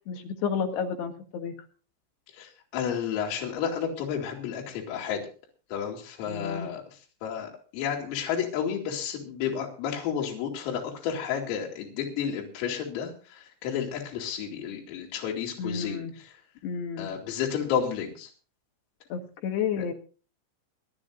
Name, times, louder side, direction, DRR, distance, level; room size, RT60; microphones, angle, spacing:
voice 1, 0.1-1.5 6.3-6.7 15.6-16.1 16.6-17.1 19.1-19.9, left 7 dB, 60° left, 4 dB, 3.4 m, -31 dB
voice 2, 2.4-5.2 5.7-6.8 7.2-16.3 17.0-18.3 19.8-19.9, left 8 dB, 80° left, -1 dB, 5.3 m, -31 dB
27.0 x 11.5 x 2.6 m, 0.36 s
omnidirectional pair, 6.0 m